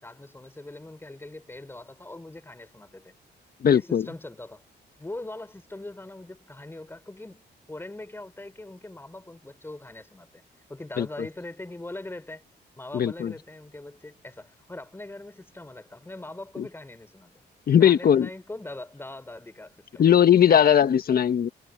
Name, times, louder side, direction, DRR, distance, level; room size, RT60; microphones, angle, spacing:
voice 1, 0.0-3.1 3.7-4.6 5.0-10.4 10.7-12.4 12.8-17.3 17.8-20.0 20.5-20.7, left 2 dB, 10° left, 5.7 m, -41 dB
voice 2, 3.6-4.0 11.0-11.1 12.9-13.3 16.6-16.7 17.7-18.3 20.0-21.5, left 9 dB, 55° left, 1.5 m, -19 dB
cardioid pair, 110°, 18 cm